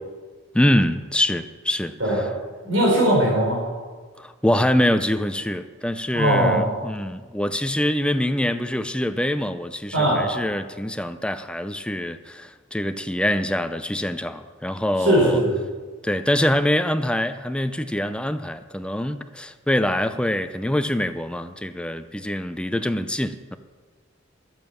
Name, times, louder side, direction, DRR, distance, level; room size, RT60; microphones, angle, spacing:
voice 1, 0.5-2.2 4.2-15.4 16.0-23.6, left 1 dB, 5° left, 10 dB, 0.6 m, -24 dB
voice 2, 2.6-3.6 6.1-6.6 9.9-10.2 15.0-15.5, right 1 dB, 85° right, -3 dB, 4.7 m, -19 dB
12.5 x 9.0 x 7.2 m, 1.5 s
head